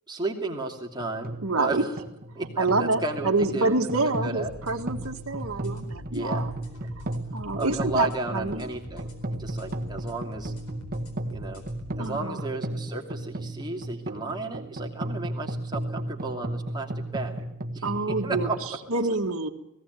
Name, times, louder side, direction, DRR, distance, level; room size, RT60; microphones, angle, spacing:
voice 1, 0.1-1.9 2.3-3.8 4.2-4.5 6.1-6.4 6.8-6.9 7.5-10.5 11.3-11.6 12.0-17.5 17.7-18.6, right 2 dB, 20° right, 1 dB, 2.7 m, -33 dB
sound 1, 1.0-18.6, right 1 dB, 40° right, 1.5 m, -35 dB
voice 2, 1.4-1.8 2.6-6.5 7.3-8.6 12.0-12.4 17.8-18.5 18.9-19.5, right 2 dB, 65° right, 3 dB, 1.8 m, -27 dB
sound 2, 4.4-12.2, equal, 75° left, 4.3 m, -45 dB
18.5 x 17.5 x 9.2 m, 0.86 s
head